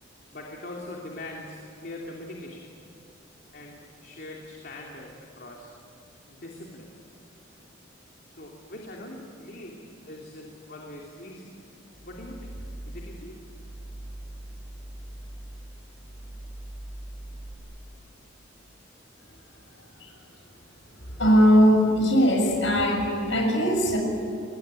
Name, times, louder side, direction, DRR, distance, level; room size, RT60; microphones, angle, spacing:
voice 1, 0.3-2.7 3.5-5.7 6.3-7.1 8.3-11.5 12.0-13.4 13.8-13.9 16.2-16.3, left 1 dB, 50° left, -1 dB, 3.1 m, -42 dB
sound 1, 11.9-17.5, right 1 dB, 10° right, 5.9 m, -41 dB
voice 2, 21.0-24.0, equal, 70° left, 2 dB, 7.0 m, -20 dB
27.0 x 21.5 x 9.8 m, 2.5 s
head